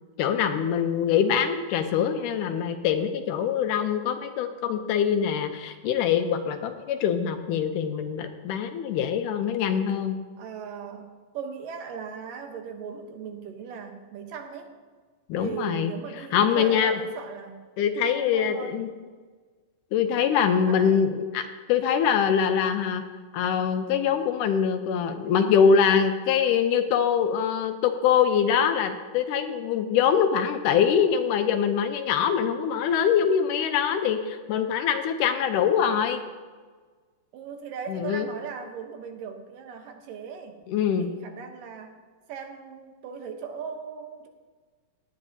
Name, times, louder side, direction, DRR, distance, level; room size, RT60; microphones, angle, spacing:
voice 1, 0.2-10.2 15.3-15.9 16.3-17.0 17.8-18.9 19.9-23.0 23.3-36.2 37.9-38.3 40.7-41.1, left 7 dB, 80° left, 7 dB, 2.2 m, -24 dB
voice 2, 10.4-14.7 15.4-17.6 18.1-18.9 20.7-21.0 37.3-40.6 41.0-42.0 42.3-44.3, right 6 dB, 80° right, 5 dB, 2.6 m, -38 dB
17.0 x 11.0 x 2.7 m, 1.4 s
omnidirectional pair, 3.9 m